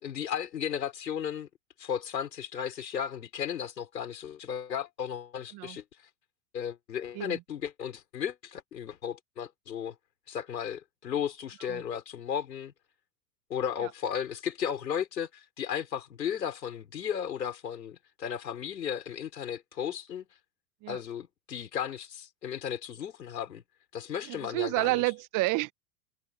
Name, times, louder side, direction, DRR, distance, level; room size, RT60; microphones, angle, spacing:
voice 1, 0.0-1.5 1.8-5.8 6.5-9.9 10.3-12.7 13.5-20.3 20.9-23.6 23.9-24.9, left 8 dB, 80° left, 4.9 m, -35 dB
voice 2, 24.2-25.7, right 22 dB, 40° right, 1.1 m, -30 dB
hypercardioid pair, 95°, 49 cm